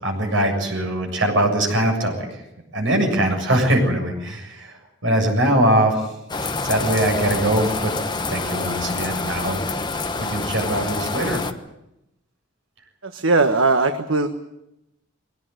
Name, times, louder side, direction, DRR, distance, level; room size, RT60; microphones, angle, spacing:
voice 1, 0.0-2.4 2.7-6.1 6.6-7.9 8.3-9.6 10.2-11.4, right 1 dB, 65° right, 2 dB, 7.4 m, -21 dB
sound 1, 6.3-11.5, left 3 dB, 20° left, 1.2 m, -27 dB
voice 2, 13.0-14.3, right 3 dB, 85° right, 7 dB, 1.4 m, -19 dB
22.0 x 18.0 x 9.4 m, 0.86 s
head